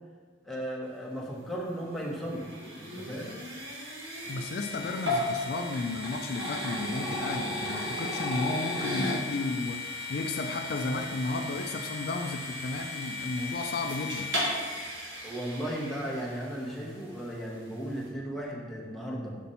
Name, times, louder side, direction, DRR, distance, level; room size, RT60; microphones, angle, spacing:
voice 1, 0.4-2.4 2.8-3.3 15.2-19.4, equal, ahead, -4 dB, 0.9 m, -35 dB
sound 1, 1.6-16.8, left 1 dB, 70° right, 1.7 m, -35 dB
voice 2, 4.3-14.3, left 3 dB, 50° left, 5 dB, 0.4 m, -33 dB
5.2 x 4.3 x 5.5 m, 1.5 s
head